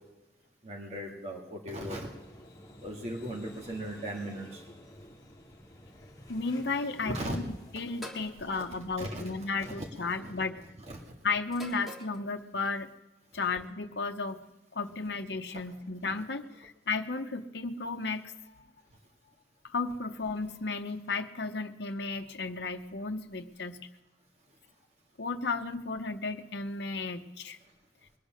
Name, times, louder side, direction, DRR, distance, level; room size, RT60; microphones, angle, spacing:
voice 1, 0.6-2.1 2.8-4.6 7.1-7.4 7.8-7.9 8.4-8.6 9.0-10.3 10.8-11.0, right 1 dB, 35° right, -1 dB, 1.9 m, -38 dB
sound 1, 1.8-9.9, left 1 dB, 20° left, 1.6 m, -52 dB
voice 2, 6.3-7.4 7.7-10.6 11.2-12.9 13.3-14.4 14.7-18.3 19.6-23.9 25.2-27.6, left 4 dB, 75° left, 6 dB, 0.8 m, -34 dB
sound 2, 8.0-8.3 9.5-9.9 11.5-12.2, equal, ahead, 1.8 m, -44 dB
21.5 x 8.3 x 6.3 m, 1.1 s
head